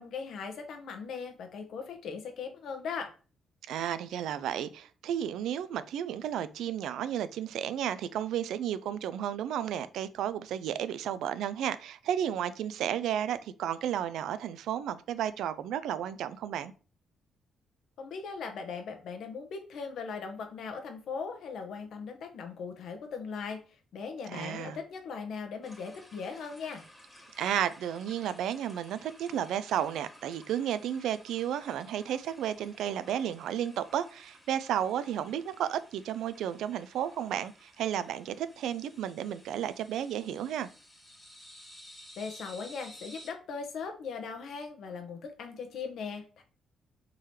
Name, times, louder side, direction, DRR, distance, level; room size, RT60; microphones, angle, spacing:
voice 1, 0.0-3.1 18.0-23.6 23.9-26.8 42.2-46.4, left 5 dB, 70° left, 0.9 m, -39 dB
voice 2, 3.7-16.7 24.3-24.8 27.4-40.7, right 10 dB, 80° right, 0.3 m, -33 dB
sound 1, 25.6-43.3, equal, 5° left, 1.3 m, -55 dB
3.8 x 3.2 x 4.2 m
cardioid pair, 90°, 0 cm